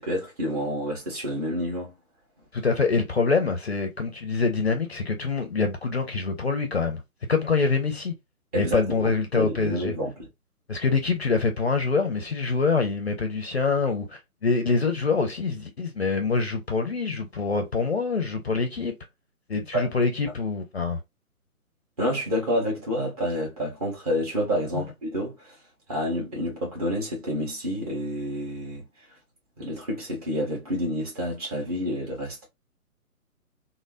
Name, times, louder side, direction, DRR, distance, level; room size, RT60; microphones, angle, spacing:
voice 1, 0.0-1.9 8.5-10.1 19.7-19.9 22.0-25.5 25.9-28.8 29.6-32.5, equal, 25° right, 1.2 m, -29 dB
voice 2, 2.5-7.0 7.3-8.1 8.5-9.9 10.7-18.9 19.5-21.0 24.7-24.9, left 4 dB, 45° left, 0.5 m, -25 dB
3.2 x 2.0 x 2.4 m
figure-of-eight pair, 140°, 44 cm